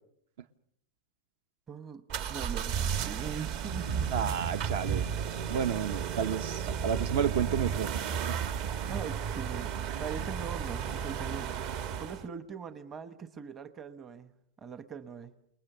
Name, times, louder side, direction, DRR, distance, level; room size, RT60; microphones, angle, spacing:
voice 1, 1.7-4.1 8.9-11.6 12.0-14.3 14.6-15.3, right 6 dB, 20° right, 11 dB, 1.0 m, -42 dB
sound 1, 2.1-12.3, right 7 dB, 45° right, 1.3 m, -33 dB
voice 2, 4.1-5.1 5.5-7.9 8.3-8.4, right 8 dB, 60° right, 12 dB, 1.0 m, -31 dB
29.0 x 20.0 x 6.8 m, 0.70 s
supercardioid pair, 160°, 0 cm